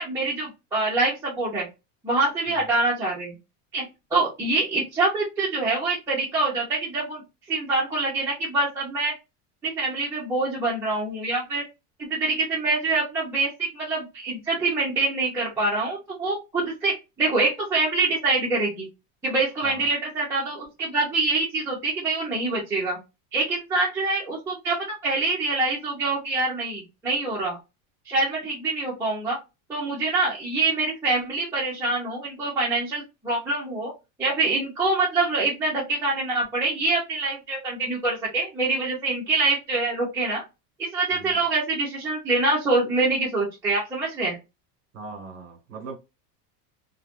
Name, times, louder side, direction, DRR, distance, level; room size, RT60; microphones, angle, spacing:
voice 1, 0.0-1.7 2.0-3.4 3.7-3.8 4.1-7.2 7.5-9.1 9.6-11.6 12.0-18.9 19.2-23.0 23.3-24.8 25.0-27.6 28.1-29.4 29.7-33.9 34.2-40.4 40.8-44.4, right 3 dB, 5° right, 0.6 m, -25 dB
voice 2, 41.1-41.4 44.9-46.0, right 3 dB, 35° right, 1.4 m, -40 dB
3.1 x 2.2 x 2.4 m
supercardioid pair, 165°, 43 cm